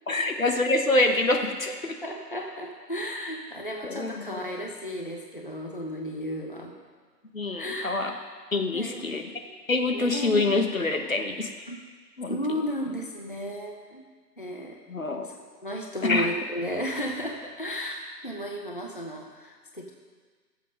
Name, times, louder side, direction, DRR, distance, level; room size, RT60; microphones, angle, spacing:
voice 1, 0.1-2.0 3.8-4.4 7.3-8.1 8.5-9.3 9.7-11.5 12.2-12.4 14.9-15.3 16.0-16.3, left 2 dB, 55° left, 5 dB, 1.2 m, -26 dB
voice 2, 2.0-6.7 7.5-8.1 8.7-9.2 9.9-10.4 11.7-11.8 12.3-14.0 14.4-14.8 15.2-15.3 15.6-19.9, equal, 30° left, 1 dB, 0.8 m, -34 dB
17.0 x 7.8 x 5.3 m, 1.5 s
figure-of-eight pair, 175°, 49 cm